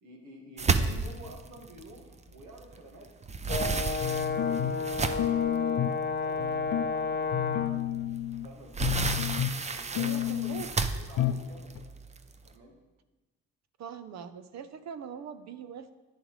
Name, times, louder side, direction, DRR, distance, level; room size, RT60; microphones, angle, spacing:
voice 1, 0.0-3.1 3.6-7.4 8.4-9.0 9.7-11.8 12.4-12.8, right 1 dB, 85° right, 1 dB, 1.9 m, -50 dB
sound 1, 0.6-2.8 3.1-5.5 6.1-6.2 6.7-6.8 8.2-12.5, right 4 dB, 25° right, 0.5 m, -32 dB
Brass instrument, 3.5-7.9, left 4 dB, 35° left, 0.7 m, -31 dB
sound 2, 4.0-4.9 5.2-6.0 6.4-6.9 7.3-8.5 8.8-9.7 10.0-10.7 11.2-11.5 11.8-11.9, left 12 dB, 75° left, 0.5 m, -31 dB
voice 2, 9.9-10.7 13.8-15.9, right 7 dB, 60° right, 11 dB, 0.7 m, -42 dB
10.5 x 9.8 x 3.2 m, 1.2 s
cardioid pair, 90°, 30 cm